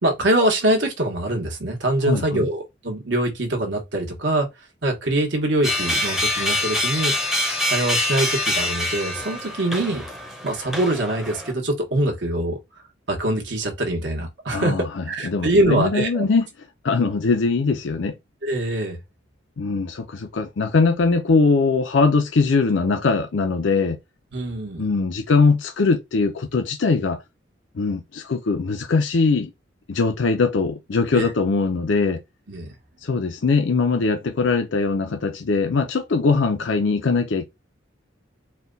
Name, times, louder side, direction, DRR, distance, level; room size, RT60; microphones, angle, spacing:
voice 1, 0.0-4.5 4.8-7.1 7.7-10.0 10.4-12.6 13.1-16.3 18.4-19.0 24.3-24.8 31.1-31.3 32.5-32.7, right 1 dB, 65° right, 1.2 m, -23 dB
voice 2, 2.0-2.5 14.5-16.5 16.8-18.1 19.6-24.0 24.8-27.2 27.7-29.5 29.9-32.2 33.0-37.4, left 4 dB, 75° left, 0.5 m, -21 dB
sound 1, 5.6-11.5, left 1 dB, ahead, 0.7 m, -25 dB
4.2 x 2.3 x 3.9 m
head